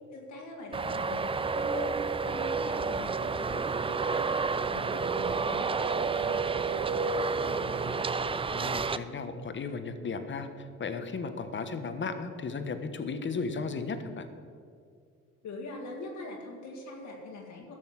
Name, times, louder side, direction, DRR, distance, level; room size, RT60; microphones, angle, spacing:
voice 1, 0.0-8.0 15.4-17.7, left 2 dB, 75° left, -1 dB, 2.1 m, -43 dB
Traffic noise roadway noise, 0.7-9.0, right 4 dB, 20° right, 0.4 m, -30 dB
voice 2, 8.5-14.3, left 4 dB, 40° left, 9 dB, 1.1 m, -35 dB
12.5 x 6.3 x 7.4 m, 2.2 s
cardioid pair, 90°, 30 cm